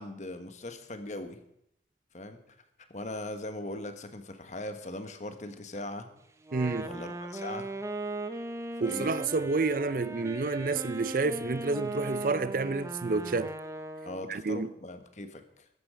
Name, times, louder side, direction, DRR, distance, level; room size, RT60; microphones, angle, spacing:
voice 1, 0.0-1.4 2.1-2.4 2.9-6.1 6.8-7.7 8.8-9.1 14.0-15.6, left 1 dB, 40° left, 1.3 m, -40 dB
Wind instrument woodwind instrument, 6.4-14.4, right 2 dB, 15° right, 0.8 m, -38 dB
voice 2, 6.5-6.9 8.8-13.5 14.3-14.7, right 3 dB, 50° right, 0.5 m, -29 dB
14.0 x 12.0 x 5.1 m
head